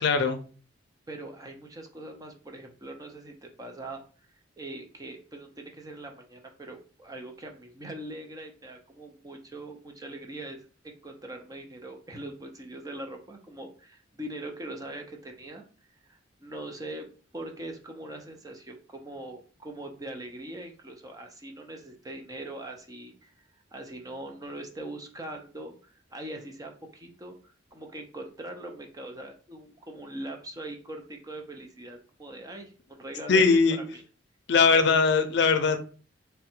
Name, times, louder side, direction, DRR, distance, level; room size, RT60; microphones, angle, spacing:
voice 1, 0.0-0.4 33.3-33.8 34.5-35.8, left 5 dB, 60° left, 8 dB, 0.5 m, -20 dB
voice 2, 1.1-4.0 4.6-15.6 16.0-17.1 17.3-23.3 23.7-33.5 33.8-34.0, right 1 dB, 20° right, 3 dB, 0.5 m, -42 dB
3.7 x 2.2 x 4.3 m, 0.39 s
head